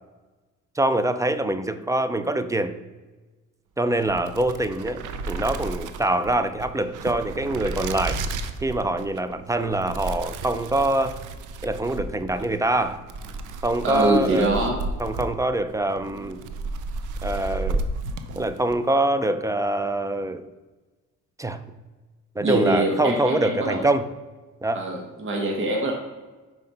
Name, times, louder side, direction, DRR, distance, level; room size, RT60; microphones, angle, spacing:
voice 1, 0.8-2.8 3.8-8.2 8.6-11.2 11.6-13.0 13.6-14.6 15.0-16.4 17.2-17.8 18.3-20.4 21.4-21.6 22.4-24.1 24.6-24.8, right 2 dB, 10° right, 11 dB, 0.5 m, -24 dB
sound 1, 3.9-18.8, right 3 dB, 80° right, 0.6 m, -33 dB
voice 2, 13.8-14.8 22.4-23.8 24.7-25.9, right 1 dB, 45° right, 0 dB, 1.4 m, -23 dB
5.7 x 4.7 x 5.3 m, 1.2 s
cardioid pair, 90°, 30 cm